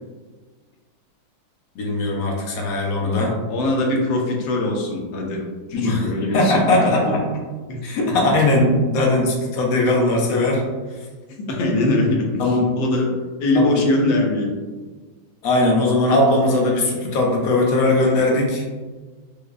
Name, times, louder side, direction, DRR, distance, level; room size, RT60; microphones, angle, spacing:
voice 1, 1.8-3.4 5.7-7.2 7.8-10.6 12.4-12.8 13.5-13.8 15.4-18.6, left 2 dB, 65° left, -1 dB, 0.9 m, -19 dB
voice 2, 3.0-5.4 5.7-7.1 7.7-8.0 11.5-13.1 13.4-14.6, left 2 dB, 80° left, 0 dB, 1.4 m, -22 dB
4.8 x 2.1 x 2.4 m, 1.3 s
omnidirectional pair, 2.1 m